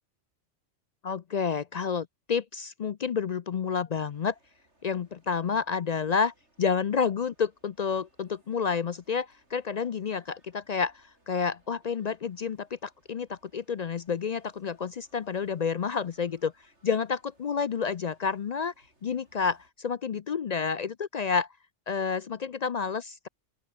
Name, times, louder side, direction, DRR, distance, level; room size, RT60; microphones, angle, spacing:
voice 1, 1.0-4.3 4.8-16.5 16.8-18.7 19.0-21.5 21.9-23.3, left 6 dB, 55° left, 0.4 m, -30 dB
sound 1, 4.0-19.7, right 1 dB, 70° right, 7.1 m, -68 dB
open air
omnidirectional pair, 1.2 m